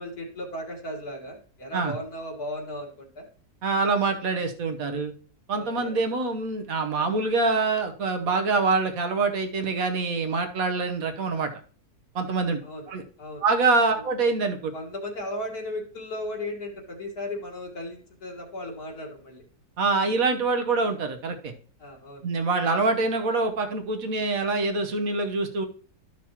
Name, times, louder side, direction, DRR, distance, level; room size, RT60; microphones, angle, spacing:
voice 1, 0.0-3.2 5.6-5.9 12.6-12.9 13.2-13.5 13.9-14.0 14.7-19.4 21.8-22.3, left 1 dB, 70° left, -1 dB, 2.2 m, -36 dB
voice 2, 3.6-5.1 5.5-11.5 12.1-12.6 12.9-13.0 13.4-14.7 19.8-21.5 22.2-25.7, right 3 dB, 65° right, 6 dB, 1.4 m, -25 dB
12.5 x 6.0 x 2.9 m, 0.43 s
omnidirectional pair, 1.7 m